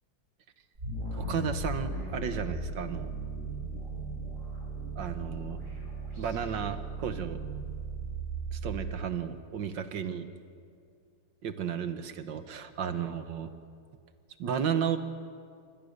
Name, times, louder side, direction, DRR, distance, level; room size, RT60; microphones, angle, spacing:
sound 1, 0.7-8.9, right 2 dB, 35° right, 6.0 m, -37 dB
voice 1, 1.1-3.1 5.0-5.6 6.2-7.4 8.5-10.3 11.4-13.5 14.4-15.0, right 8 dB, 65° right, 10 dB, 1.7 m, -33 dB
25.5 x 20.5 x 6.7 m, 2.3 s
omnidirectional pair, 2.2 m